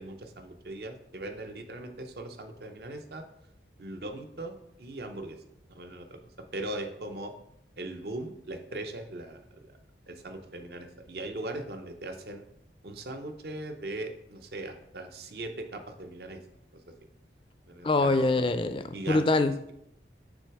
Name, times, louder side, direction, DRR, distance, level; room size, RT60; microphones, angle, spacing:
voice 1, 0.0-3.2 3.8-5.4 5.7-6.2 6.5-7.3 7.8-9.4 10.1-12.4 12.8-16.4 17.7-18.5 18.9-19.3, right 2 dB, 65° right, 6 dB, 0.7 m, -39 dB
voice 2, 17.8-19.5, left 2 dB, 30° left, 10 dB, 0.3 m, -24 dB
6.2 x 3.4 x 4.6 m, 0.77 s
head